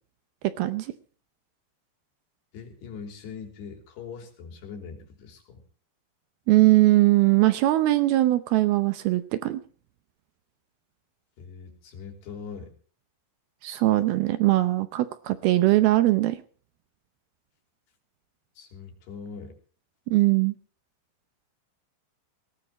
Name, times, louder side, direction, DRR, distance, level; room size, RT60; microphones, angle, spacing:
voice 1, 0.6-0.9 6.5-9.6 13.6-16.4 20.1-20.5, right 17 dB, 75° right, 12 dB, 2.3 m, -21 dB
voice 2, 2.5-5.6 11.4-12.8 18.6-19.6, left 5 dB, 65° left, 4 dB, 5.3 m, -41 dB
19.5 x 18.0 x 3.0 m, 0.42 s
omnidirectional pair, 5.2 m